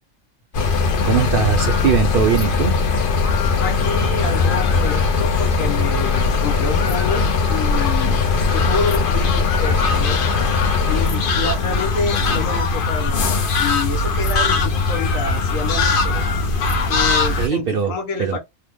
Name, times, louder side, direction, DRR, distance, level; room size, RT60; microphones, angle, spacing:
sound 1, 0.5-17.5, left 4 dB, 55° left, 0.6 m, -19 dB
voice 1, 1.0-2.7 3.4-3.6 17.4-17.9 18.2-18.4, right 8 dB, 60° right, 0.6 m, -20 dB
voice 2, 3.6-10.2 10.9-16.2 16.9-18.4, left 4 dB, 85° left, 1.3 m, -28 dB
2.8 x 2.1 x 3.4 m
omnidirectional pair, 1.3 m